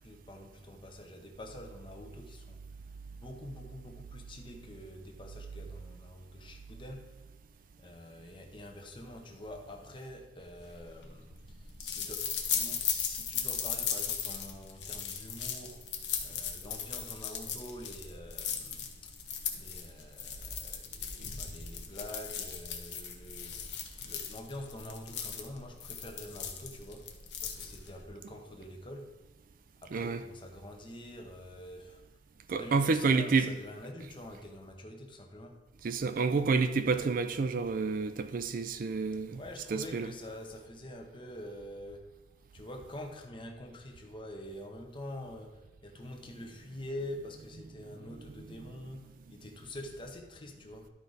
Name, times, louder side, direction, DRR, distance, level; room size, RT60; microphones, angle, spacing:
voice 1, 0.0-2.6 3.1-7.1 7.8-15.8 16.2-19.1 19.5-23.6 24.1-27.1 27.4-29.1 29.8-32.0 32.5-35.6 39.3-42.1 42.5-50.9, left 1 dB, 30° left, 0.9 m, -46 dB
sound 1, 10.6-28.0, left 7 dB, 75° left, 1.0 m, -37 dB
voice 2, 29.9-30.2 32.5-33.5 35.8-39.4 39.7-40.1 48.6-48.7, right 4 dB, 50° right, 0.4 m, -29 dB
12.0 x 4.8 x 4.0 m
head